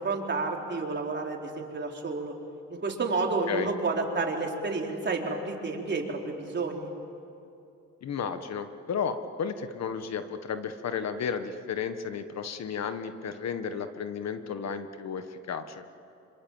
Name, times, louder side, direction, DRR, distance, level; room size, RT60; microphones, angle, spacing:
voice 1, 0.0-2.3 2.7-6.9, right 3 dB, 35° right, 0 dB, 4.3 m, -30 dB
voice 2, 8.0-15.8, left 6 dB, 60° left, 9 dB, 1.6 m, -33 dB
26.5 x 26.5 x 7.4 m, 2.7 s
cardioid pair, 90°, 30 cm